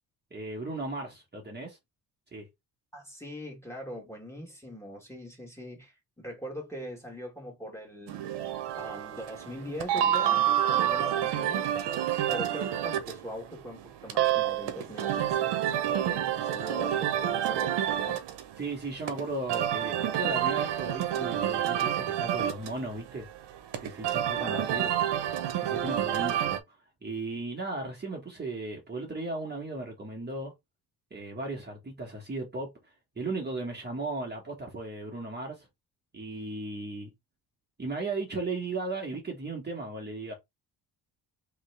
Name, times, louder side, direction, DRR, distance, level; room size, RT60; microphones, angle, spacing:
voice 1, 0.3-1.8 2.3-2.5 18.6-23.3 23.8-24.9 25.6-26.8 27.0-30.5 31.1-32.7 33.2-35.7 36.1-37.1 37.8-40.3, right 2 dB, 25° right, 1.4 m, -36 dB
voice 2, 2.9-8.3 8.7-11.7 12.3-18.2 24.4-24.9, equal, 5° left, 1.9 m, -41 dB
sound 1, 8.1-26.6, right 11 dB, 90° right, 0.9 m, -29 dB
3.6 x 3.1 x 3.3 m
cardioid pair, 105°, 40 cm